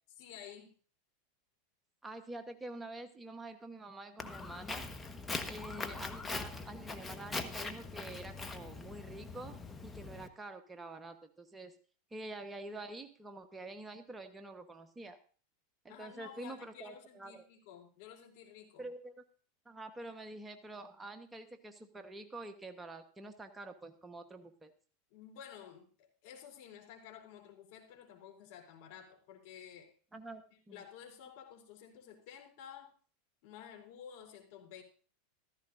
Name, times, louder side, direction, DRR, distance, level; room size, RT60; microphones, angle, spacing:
voice 1, 0.2-0.7 15.9-18.9 25.1-29.9 30.5-32.9 33.4-34.8, left 8 dB, 60° left, 1 dB, 3.5 m, -52 dB
voice 2, 2.0-4.8 5.5-9.6 9.8-11.8 12.1-15.2 15.8-17.4 18.8-19.2 19.6-24.7 30.1-30.4 30.7-30.8, right 2 dB, 15° right, 7 dB, 1.2 m, -47 dB
Walk footsteps, 4.2-10.3, left 3 dB, 15° left, 1.4 m, -42 dB
15.0 x 14.0 x 2.6 m, 0.41 s
hypercardioid pair, 90°, 0 cm